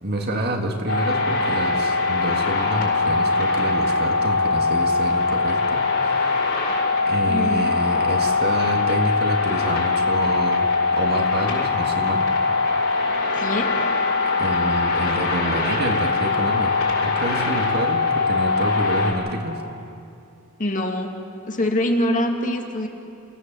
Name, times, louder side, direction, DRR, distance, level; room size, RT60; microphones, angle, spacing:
voice 1, 0.0-6.4 7.1-12.3 14.4-16.7 17.0-19.6, right 1 dB, 45° right, 3 dB, 2.1 m, -27 dB
sound 1, 0.9-19.1, left 4 dB, 65° left, 6.3 m, -22 dB
voice 2, 7.3-7.7 13.4-13.8 20.6-21.2 21.5-22.9, left 1 dB, 35° left, 3 dB, 2.0 m, -24 dB
29.0 x 17.0 x 7.6 m, 2.6 s
head